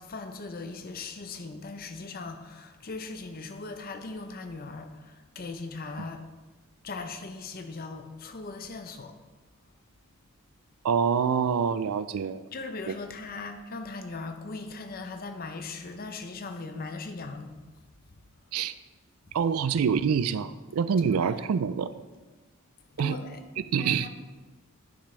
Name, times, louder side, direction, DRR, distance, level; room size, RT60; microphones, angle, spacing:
voice 1, 0.0-6.2 6.8-9.1 12.5-17.5 21.0-21.3 22.9-23.4 23.8-24.1, left 3 dB, 45° left, 7 dB, 0.6 m, -39 dB
voice 2, 10.8-12.5 12.9-13.0 18.5-18.7 19.3-21.9 23.0-23.2 23.6-24.1, right 6 dB, 85° right, 14 dB, 0.4 m, -26 dB
9.8 x 6.0 x 3.3 m, 1.3 s
head